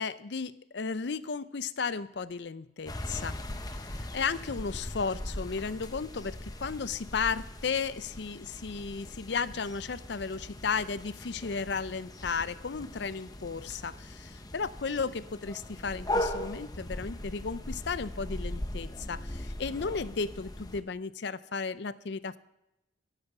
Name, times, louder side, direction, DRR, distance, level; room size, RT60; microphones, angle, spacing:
voice 1, 0.0-3.4 3.7-22.4, left 5 dB, 60° left, 16 dB, 0.5 m, -34 dB
sound 1, 2.8-20.8, left 1 dB, 20° left, 0.8 m, -39 dB
13.5 x 10.5 x 5.9 m, 0.92 s
head